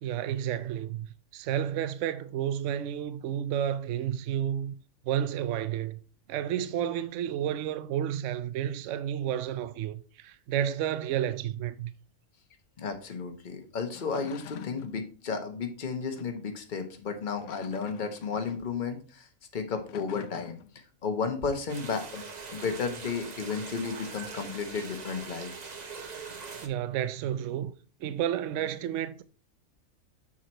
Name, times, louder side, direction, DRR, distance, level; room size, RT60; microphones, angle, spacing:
voice 1, 0.0-4.7 5.0-6.0 6.3-11.9 26.6-27.7 28.0-29.2, right 10 dB, 70° right, 0.9 m, -31 dB
voice 2, 12.8-19.3 19.5-20.6 21.0-22.2 22.5-25.5, left 5 dB, 40° left, 1.1 m, -33 dB
sound 1, 13.8-15.0 16.1-16.4 17.2-18.7 19.7-20.8, left 11 dB, 70° left, 0.9 m, -46 dB
sound 2, 21.7-26.7, right 5 dB, 35° right, 0.8 m, -42 dB
7.3 x 4.6 x 4.4 m
omnidirectional pair, 1.4 m